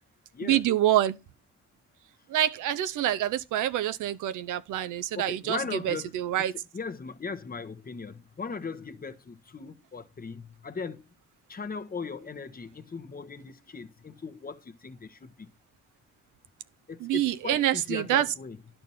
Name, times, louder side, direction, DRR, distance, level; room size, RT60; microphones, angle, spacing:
voice 1, 0.4-1.2 2.3-5.6 5.8-6.5 17.0-18.3, right 12 dB, 85° right, 0.7 m, -26 dB
voice 2, 5.1-11.1 11.5-15.5 16.9-18.6, left 5 dB, 30° left, 1.1 m, -38 dB
11.0 x 4.5 x 5.6 m
cardioid pair, 90°, 30 cm